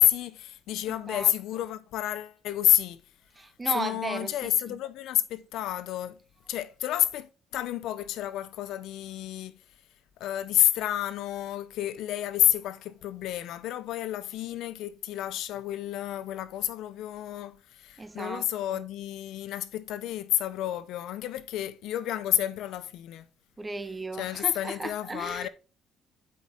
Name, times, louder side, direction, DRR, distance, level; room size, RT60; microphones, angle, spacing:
voice 1, 0.0-3.0 3.7-6.2 6.5-9.5 10.2-23.2 24.1-25.5, left 13 dB, 80° left, 0.6 m, -29 dB
voice 2, 3.4-4.8 18.0-18.4 18.7-18.8 23.6-25.5, right 3 dB, 15° right, 0.6 m, -35 dB
7.8 x 5.0 x 3.9 m
cardioid pair, 135°, 0 cm